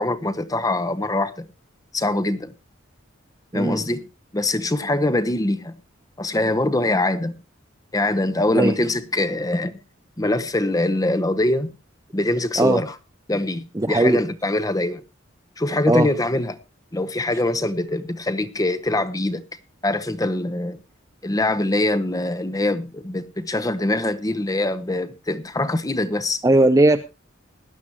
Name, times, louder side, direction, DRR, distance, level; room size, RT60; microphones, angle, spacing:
voice 1, 0.0-1.5 1.9-2.5 3.5-4.0 4.3-5.8 6.2-7.4 7.9-9.8 10.2-11.7 12.1-12.9 13.3-15.0 15.6-16.6 16.9-19.4 19.8-20.8 21.2-26.4, left 2 dB, 20° left, 0.9 m, -23 dB
voice 2, 3.5-3.8 8.5-8.7 12.6-12.8 13.7-14.2 15.9-16.1 26.4-27.0, right 2 dB, 15° right, 0.6 m, -18 dB
18.5 x 11.5 x 2.9 m
head